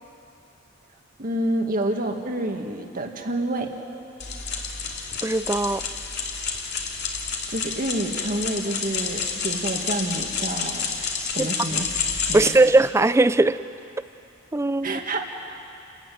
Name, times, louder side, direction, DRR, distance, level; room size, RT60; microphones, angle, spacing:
voice 1, 1.2-3.7 7.5-10.9 11.3-11.9 12.3-12.6 14.8-15.2, right 1 dB, 45° right, 3 dB, 2.0 m, -28 dB
sound 1, 4.2-12.5, left 5 dB, 60° left, 2.6 m, -29 dB
voice 2, 5.2-5.9 11.2-11.5 12.3-13.6 14.5-15.0, right 2 dB, 15° right, 14 dB, 0.4 m, -19 dB
30.0 x 14.5 x 9.4 m, 2.7 s
head